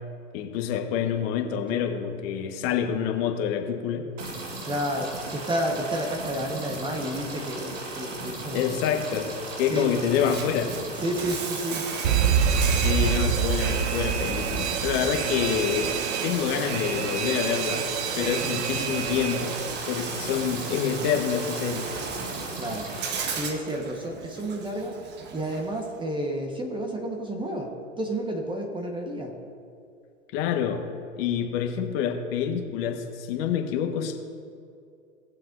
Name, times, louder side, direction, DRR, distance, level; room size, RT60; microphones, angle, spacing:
voice 1, 0.3-4.0 8.5-9.3 9.6-10.7 12.8-15.9 16.2-17.9 18.1-19.6 19.9-21.9 30.3-30.9 31.2-34.1, left 8 dB, 50° left, 4 dB, 1.4 m, -27 dB
sound 1, 4.2-23.4, right 2 dB, 75° right, 1.9 m, -37 dB
voice 2, 4.6-8.8 9.7-9.9 11.0-11.8 22.6-22.9 23.3-25.0 25.3-27.7 28.0-29.3, right 1 dB, 15° right, 2 dB, 1.2 m, -31 dB
Bathtub (filling or washing), 10.0-26.0, right 6 dB, 30° right, 0.9 m, -36 dB
Alarm, 12.0-19.7, right 7 dB, 60° right, 0.7 m, -27 dB
18.5 x 7.4 x 2.6 m, 2.4 s
hypercardioid pair, 100°, 37 cm